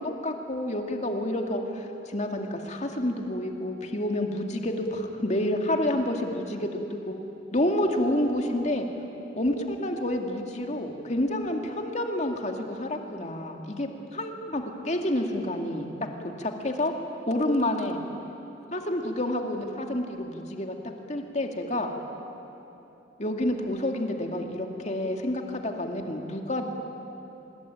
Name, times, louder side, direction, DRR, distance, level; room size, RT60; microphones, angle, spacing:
voice 1, 0.0-7.1 7.5-8.9 9.4-15.9 16.4-16.9 17.3-18.0 18.7-20.7 21.1-21.9 23.2-26.7, left 1 dB, 40° left, 3 dB, 2.3 m, -29 dB
25.0 x 22.0 x 8.9 m, 3.0 s
head